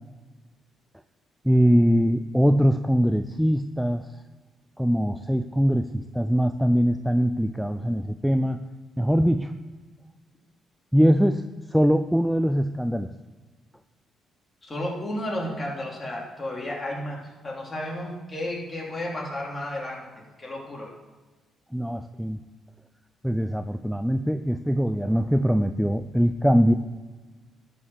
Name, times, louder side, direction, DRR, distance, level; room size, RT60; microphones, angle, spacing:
voice 1, 1.4-4.1 4.8-8.6 9.0-9.5 10.9-11.4 11.7-13.1 21.7-22.4 23.2-26.7, equal, ahead, 9 dB, 0.4 m, -22 dB
voice 2, 14.6-20.9, left 1 dB, 25° left, -2 dB, 3.0 m, -33 dB
11.5 x 5.4 x 6.3 m, 1.3 s
cardioid pair, 90°, 0 cm